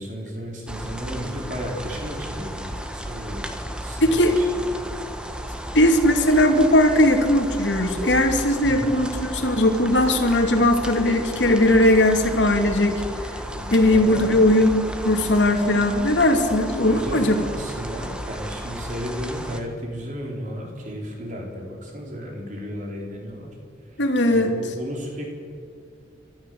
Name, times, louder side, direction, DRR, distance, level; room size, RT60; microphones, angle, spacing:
voice 1, 0.0-4.5 4.8-5.0 8.6-8.9 13.5-14.3 16.9-23.6 23.9-25.3, equal, 45° right, 0 dB, 4.2 m, -34 dB
sound 1, 0.7-19.6, equal, 5° right, 1.4 m, -34 dB
voice 2, 4.0-4.4 5.7-13.0 13.7-17.4 24.0-24.5, left 1 dB, 85° left, 4 dB, 2.7 m, -19 dB
30.0 x 13.5 x 7.9 m, 2.3 s
head